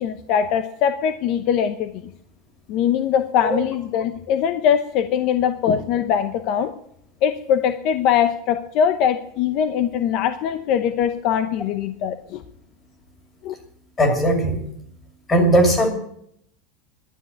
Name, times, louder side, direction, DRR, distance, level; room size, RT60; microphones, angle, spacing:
voice 1, 0.0-2.1 2.7-6.7 7.2-12.4 13.4-13.5, left 8 dB, 45° left, 10 dB, 0.8 m, -22 dB
voice 2, 14.0-14.6 15.3-15.9, right 1 dB, 15° left, 5 dB, 2.6 m, -18 dB
12.0 x 9.6 x 9.2 m, 0.70 s
supercardioid pair, 170°, 0 cm